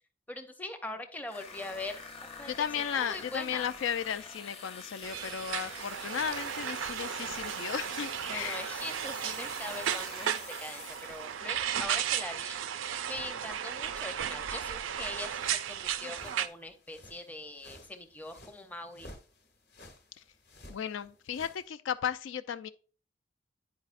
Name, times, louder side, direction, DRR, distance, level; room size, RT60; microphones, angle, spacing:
voice 1, 0.3-2.0 2.4-2.7 2.9-3.7 8.3-19.1, left 2 dB, 10° left, 0.6 m, -42 dB
sound 1, 1.3-11.4, left 5 dB, 30° left, 0.9 m, -47 dB
voice 2, 2.5-8.6 20.2-20.3 20.7-22.7, left 8 dB, 75° left, 0.3 m, -35 dB
sound 2, 5.0-16.5, right 9 dB, 80° right, 0.4 m, -35 dB
sound 3, 15.3-21.7, left 1 dB, 55° left, 1.1 m, -54 dB
9.4 x 4.8 x 2.5 m
head